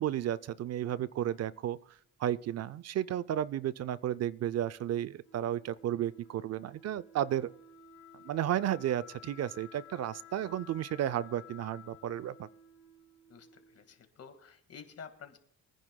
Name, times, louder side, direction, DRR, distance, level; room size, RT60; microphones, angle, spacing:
voice 1, 0.0-7.5 8.2-12.5, right 11 dB, 55° right, 0.5 m, -33 dB
Wind instrument woodwind instrument, 5.2-14.0, left 5 dB, 85° left, 3.8 m, -54 dB
voice 2, 13.3-15.4, left 6 dB, 55° left, 1.9 m, -50 dB
24.0 x 10.0 x 2.3 m
cardioid pair, 90°, 30 cm